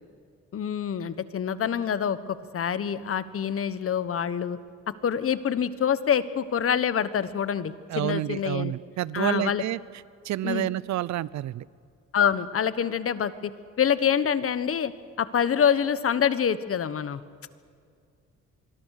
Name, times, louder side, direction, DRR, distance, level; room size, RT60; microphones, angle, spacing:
voice 1, 0.5-4.6 5.0-8.7 9.1-9.6 10.4-10.7 12.1-13.5 13.8-14.9 15.2-17.2, left 8 dB, 50° left, 14 dB, 1.2 m, -26 dB
voice 2, 7.9-9.8 10.2-11.6, right 14 dB, 65° right, 21 dB, 0.6 m, -29 dB
25.0 x 22.0 x 6.6 m, 2.2 s
cardioid pair, 90°, 30 cm